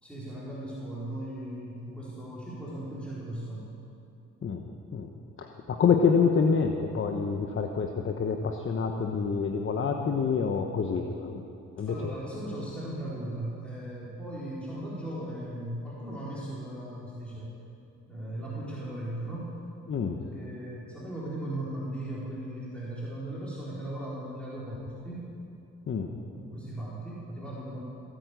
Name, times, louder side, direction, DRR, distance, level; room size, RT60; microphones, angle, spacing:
voice 1, 0.0-3.6 11.8-17.5 18.1-19.5 20.2-25.2 26.3-27.8, right 1 dB, 5° left, -8 dB, 4.2 m, -37 dB
voice 2, 5.4-11.4 11.8-12.1 19.9-20.2 25.9-26.1, left 5 dB, 40° left, 4 dB, 1.1 m, -27 dB
17.5 x 9.1 x 8.3 m, 2.7 s
cardioid pair, 90°, 30 cm